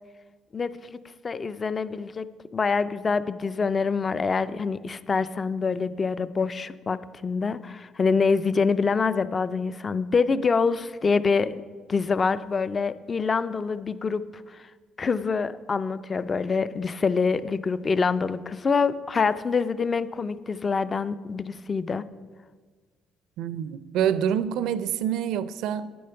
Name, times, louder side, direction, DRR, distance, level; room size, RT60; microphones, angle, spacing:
voice 1, 0.5-1.0 1.2-11.5 11.9-14.2 15.0-22.0, left 5 dB, 30° left, 0.4 m, -25 dB
voice 2, 23.4-25.9, right 9 dB, 80° right, 0.5 m, -26 dB
9.4 x 8.5 x 5.7 m
cardioid pair, 125°, 0 cm